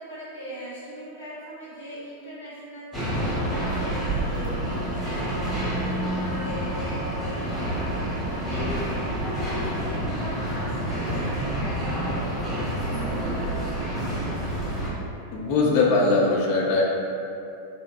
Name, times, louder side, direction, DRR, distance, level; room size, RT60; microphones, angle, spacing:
voice 1, 0.0-14.7, equal, 70° left, -9 dB, 1.0 m, -40 dB
sound 1, 2.9-14.9, right 1 dB, 5° right, 0.9 m, -28 dB
voice 2, 15.3-16.8, left 3 dB, 45° left, -3 dB, 0.4 m, -21 dB
2.9 x 2.1 x 2.4 m, 2.6 s
figure-of-eight pair, 90°, 0 cm